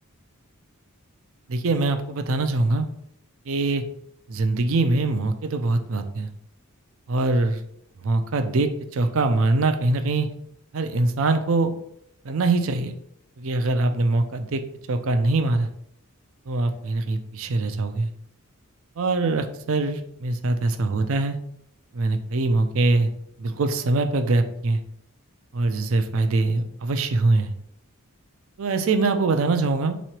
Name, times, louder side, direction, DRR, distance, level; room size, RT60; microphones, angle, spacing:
voice 1, 1.5-2.9 3.5-3.8 4.3-6.3 7.1-7.6 8.0-10.3 10.7-11.7 12.2-12.9 13.4-14.6 14.9-15.7 16.5-18.1 19.0-21.4 21.9-23.1 23.4-24.8 25.5-27.5 28.6-30.0, right 2 dB, 65° right, 8 dB, 0.5 m, -23 dB
3.8 x 3.1 x 4.3 m, 0.73 s
head